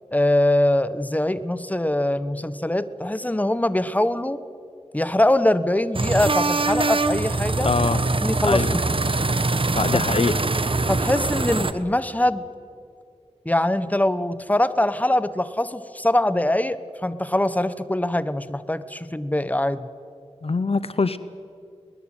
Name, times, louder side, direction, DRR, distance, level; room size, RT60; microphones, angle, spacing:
voice 1, 0.1-4.4 4.9-7.7 8.2-8.8 9.9-10.0 10.9-12.4 13.4-19.9, left 1 dB, 15° left, 14 dB, 1.1 m, -23 dB
sound 1, 5.9-11.7, right 3 dB, 50° right, 1.2 m, -23 dB
voice 2, 7.6-8.0 8.4-8.8 9.7-10.4 20.4-21.2, left 4 dB, 60° left, 14 dB, 0.8 m, -23 dB
22.5 x 20.0 x 9.0 m, 2.4 s
wide cardioid pair, 55°, 12 cm